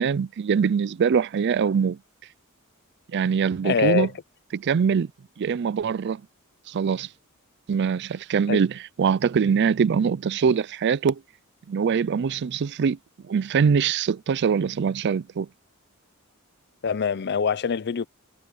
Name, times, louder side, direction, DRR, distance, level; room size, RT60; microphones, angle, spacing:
voice 1, 0.0-2.0 3.1-4.1 4.5-5.1 5.4-6.2 6.7-7.1 7.7-11.2 11.7-13.0 13.3-15.5, right 6 dB, 55° right, 0.4 m, -23 dB
voice 2, 3.6-4.1 8.5-8.6 16.8-18.1, left 6 dB, 50° left, 0.5 m, -24 dB
head